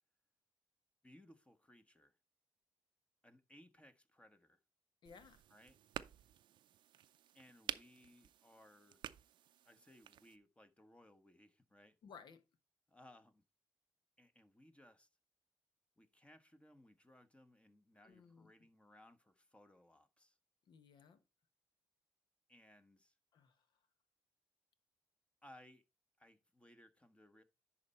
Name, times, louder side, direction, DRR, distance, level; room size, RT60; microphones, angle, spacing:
voice 1, 1.0-2.2 3.2-4.6 5.5-5.8 7.3-9.0 9.6-12.0 12.9-13.4 14.2-15.1 16.0-20.4 22.5-23.2 25.4-25.8 26.2-27.4, left 1 dB, 15° left, 1.2 m, -63 dB
voice 2, 5.0-5.4 12.0-12.4 18.0-18.5 20.7-21.2 23.3-23.7, left 6 dB, 65° left, 1.3 m, -59 dB
sound 1, 5.0-10.4, right 11 dB, 70° right, 0.5 m, -50 dB
10.5 x 4.2 x 4.3 m
supercardioid pair, 60°, 8 cm